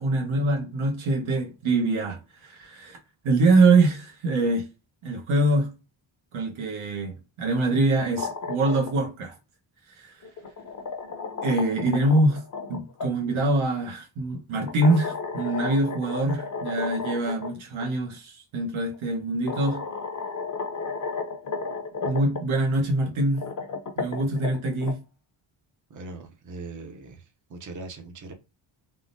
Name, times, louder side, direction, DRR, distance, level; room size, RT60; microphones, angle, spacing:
voice 1, 0.0-3.0 3.2-4.7 5.0-5.7 6.3-9.3 10.0-10.1 11.4-12.4 12.7-19.8 22.0-23.5 24.0-25.0, right 2 dB, 75° right, 1.0 m, -24 dB
sound 1, 7.9-9.1 10.2-13.1 14.7-17.5 17.8-17.9 18.9-19.0 19.5-22.4 23.2-24.9, left 4 dB, 40° left, 0.6 m, -33 dB
voice 2, 25.9-28.3, right 3 dB, 40° right, 0.6 m, -40 dB
3.6 x 2.0 x 2.5 m
wide cardioid pair, 155°, 49 cm